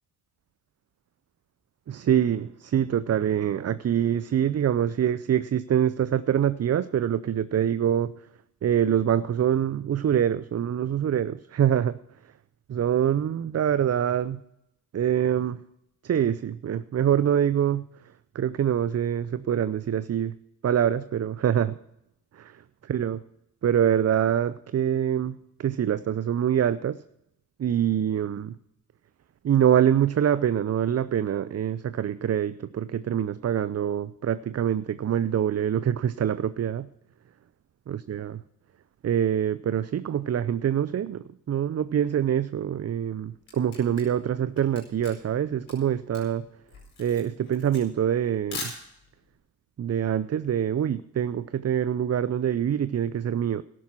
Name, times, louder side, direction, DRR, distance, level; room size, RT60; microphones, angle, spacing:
voice 1, 1.9-8.1 8.6-12.0 12.7-14.4 14.9-15.6 16.0-17.9 18.3-20.3 20.6-21.8 22.3-22.5 22.9-23.2 23.6-27.0 27.6-28.6 29.4-36.9 37.9-38.3 39.0-46.5 47.0-48.7 49.8-53.6, right 9 dB, 30° right, 15 dB, 0.5 m, -25 dB
Camera, 43.0-49.3, left 4 dB, 85° left, 4.9 m, -41 dB
13.5 x 11.0 x 6.0 m, 0.82 s
hypercardioid pair, 45°, 50 cm